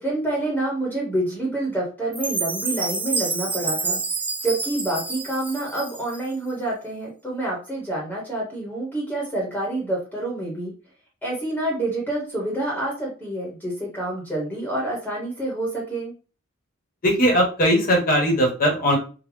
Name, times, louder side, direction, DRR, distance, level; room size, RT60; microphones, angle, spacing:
voice 1, 0.0-4.0 4.4-10.7 11.2-16.1, right 1 dB, 10° left, -4 dB, 1.0 m, -27 dB
Chime, 2.1-6.3, right 3 dB, 10° right, 0.4 m, -28 dB
voice 2, 17.0-19.0, equal, 45° left, 0 dB, 1.2 m, -19 dB
3.7 x 2.2 x 3.2 m, 0.36 s
head